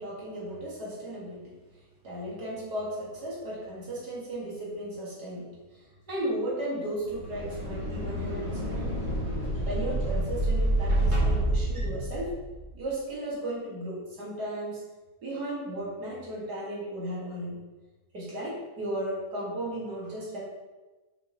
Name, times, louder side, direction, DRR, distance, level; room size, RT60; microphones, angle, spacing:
voice 1, 0.0-1.5 2.0-9.1 9.7-12.4 12.7-14.8 15.2-17.6 18.1-20.4, right 1 dB, 80° right, -6 dB, 2.7 m, -35 dB
sound 1, 7.0-12.7, right 1 dB, 20° right, 2.1 m, -28 dB
6.2 x 6.0 x 3.1 m, 1.2 s
omnidirectional pair, 1.7 m